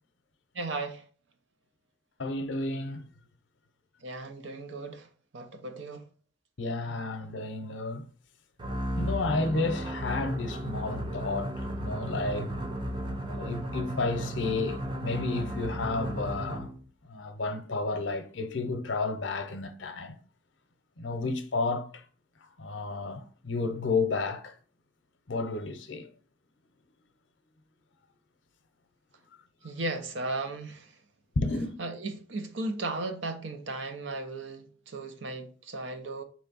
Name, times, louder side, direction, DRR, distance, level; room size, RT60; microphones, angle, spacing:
voice 1, 0.5-1.0 4.0-5.1 5.3-6.1 29.6-30.9 31.8-36.2, right 2 dB, 70° right, 0.7 m, -36 dB
voice 2, 2.2-3.0 6.6-8.0 9.0-12.5 13.4-16.7 17.1-20.1 21.0-22.0 22.6-24.5 25.3-26.1 31.4-31.7, left 3 dB, 75° left, 0.7 m, -31 dB
sound 1, 8.6-16.8, equal, 25° right, 0.5 m, -34 dB
4.3 x 3.1 x 3.9 m
head